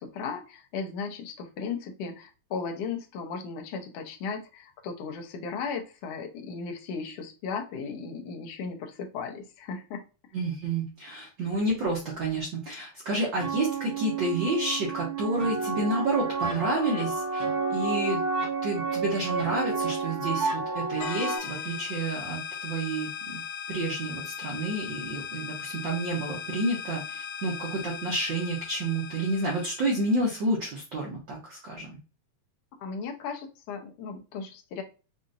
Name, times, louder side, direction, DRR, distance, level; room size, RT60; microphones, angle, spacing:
voice 1, 0.0-10.0 32.8-34.8, left 5 dB, 70° left, 3 dB, 1.6 m, -36 dB
voice 2, 10.3-17.4 17.7-18.2 18.6-23.4 23.7-32.0, right 2 dB, 90° right, -2 dB, 1.0 m, -30 dB
sound 1, 13.4-21.4, right 4 dB, 50° right, 1.6 m, -30 dB
sound 2, 21.0-30.4, left 7 dB, 90° left, 2.2 m, -38 dB
5.7 x 2.5 x 2.5 m, 0.32 s
omnidirectional pair, 3.4 m